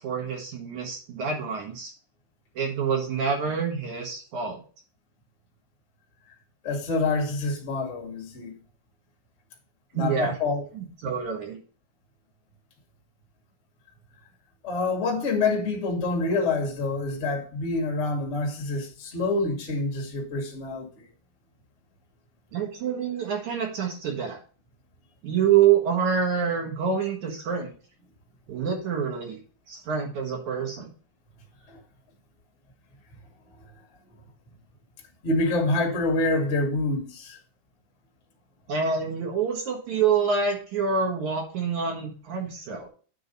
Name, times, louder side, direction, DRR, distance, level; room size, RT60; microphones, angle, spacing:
voice 1, 0.0-1.9 2.6-4.6 9.9-10.4 10.7-11.6 22.5-24.4 25.2-27.7 28.5-29.4 29.7-30.9 38.7-42.9, right 7 dB, 55° right, 2.5 m, -26 dB
voice 2, 6.6-8.5 9.9-10.6 14.6-21.1 31.7-31.8 35.2-37.4, left 3 dB, 35° left, 1.1 m, -27 dB
9.4 x 3.9 x 5.4 m
omnidirectional pair, 4.9 m